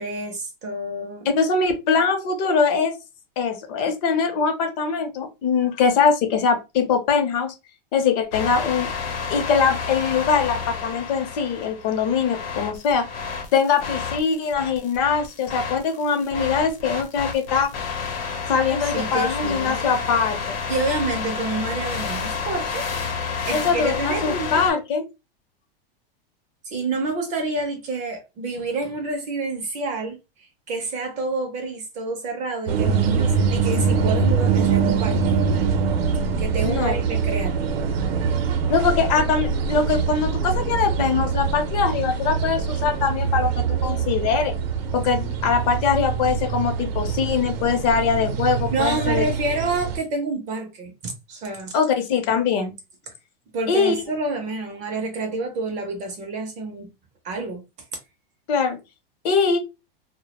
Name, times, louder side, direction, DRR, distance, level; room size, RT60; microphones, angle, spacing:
voice 1, 0.0-1.3 18.7-19.7 20.7-22.9 23.5-24.6 26.6-35.7 36.4-37.9 48.7-51.7 53.5-56.9 57.2-57.6, right 3 dB, 25° right, 0.4 m, -28 dB
voice 2, 1.2-2.9 3.4-7.5 7.9-8.9 9.3-13.1 13.5-17.7 18.5-20.5 23.5-25.0 36.6-37.0 38.7-44.5 44.9-49.3 51.7-52.7 53.7-54.0 58.5-58.8 59.2-59.6, left 5 dB, 45° left, 0.6 m, -22 dB
sound 1, 8.3-24.7, left 5 dB, 80° left, 0.8 m, -30 dB
sound 2, 32.7-50.0, right 5 dB, 80° right, 0.6 m, -24 dB
2.1 x 2.1 x 2.9 m
supercardioid pair, 150°, 29 cm